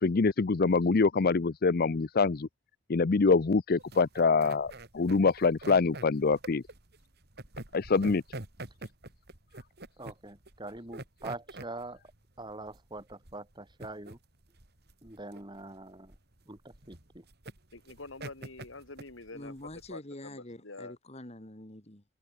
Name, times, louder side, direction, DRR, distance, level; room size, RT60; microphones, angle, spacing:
voice 1, 0.0-2.5 2.9-6.6 7.7-8.2, left 4 dB, 50° left, 0.6 m, -25 dB
sound 1, 3.8-19.9, right 2 dB, 55° right, 3.0 m, -46 dB
voice 2, 10.0-12.0 12.4-14.2 15.0-16.1 16.5-17.2, right 2 dB, 25° right, 4.6 m, -43 dB
voice 3, 17.7-19.5 19.9-20.9, left 3 dB, 75° left, 2.5 m, -46 dB
voice 4, 19.3-22.0, left 1 dB, 35° left, 2.7 m, -45 dB
head